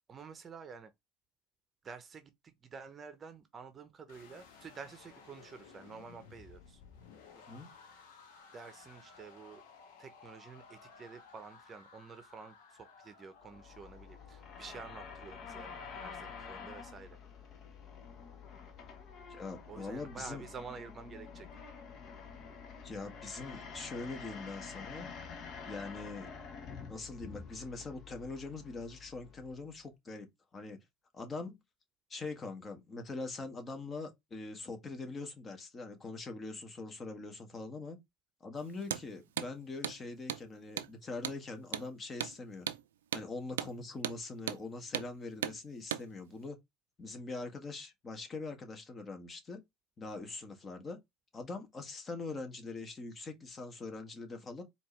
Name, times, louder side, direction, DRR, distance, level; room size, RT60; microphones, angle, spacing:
voice 1, 0.1-0.9 1.8-6.8 8.5-9.6 10.0-15.7 16.0-17.2 19.7-21.5, right 5 dB, 30° right, 0.7 m, -49 dB
sound 1, 4.1-16.1, left 5 dB, 75° left, 1.2 m, -57 dB
voice 2, 7.3-7.7 19.3-20.4 22.8-25.1 25.6-26.3 26.9-30.3 30.5-30.8 31.1-31.6 32.1-38.0 38.4-42.7 43.1-46.6 47.0-49.6 50.0-51.0 51.3-54.6, left 3 dB, 30° left, 1.4 m, -43 dB
sound 2, 13.4-29.8, left 5 dB, 50° left, 1.2 m, -48 dB
Hammer, 38.8-39.1 39.4-39.5 39.8-40.0 40.3-40.4 40.8-40.9 41.2-41.4 41.7-41.9 42.2-42.4 42.7-42.8 43.1-43.3 43.6-43.7 44.0-44.2 44.5-44.6 44.9-45.1 45.4-45.6 45.9-46.1, right 11 dB, 85° right, 0.4 m, -36 dB
4.3 x 2.9 x 3.2 m
hypercardioid pair, 85°, 0 cm